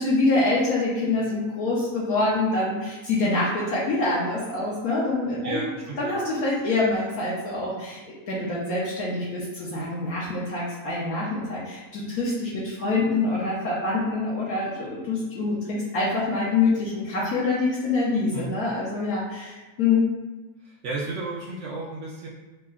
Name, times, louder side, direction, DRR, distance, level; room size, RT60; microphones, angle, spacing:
voice 1, 0.0-5.6 6.0-8.0 8.3-20.1, left 3 dB, 70° left, -6 dB, 1.1 m, -25 dB
voice 2, 5.4-6.2 18.3-18.5 20.6-22.3, right 3 dB, 65° right, -4 dB, 0.8 m, -33 dB
5.4 x 2.1 x 2.4 m, 1.2 s
omnidirectional pair, 1.6 m